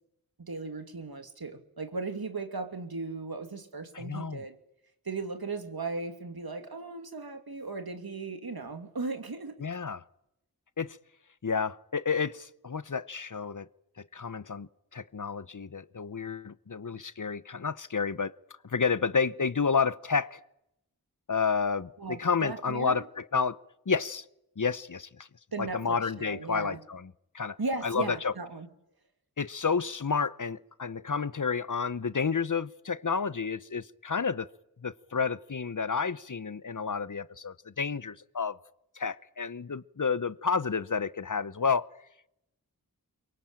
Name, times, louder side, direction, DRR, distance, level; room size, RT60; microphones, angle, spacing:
voice 1, 0.4-4.5 5.0-9.6 22.0-23.0 25.5-26.8 27.6-28.7, right 3 dB, 75° right, 2.7 m, -37 dB
voice 2, 3.9-4.4 9.6-10.0 10.8-11.0 11.4-13.7 14.1-18.3 18.6-20.4 21.3-23.6 23.9-24.2 24.6-25.3 25.6-27.6 27.8-28.3 29.4-34.5 34.8-38.6 38.9-41.9, left 5 dB, 55° left, 0.9 m, -30 dB
23.5 x 23.5 x 9.0 m
wide cardioid pair, 45°, 37 cm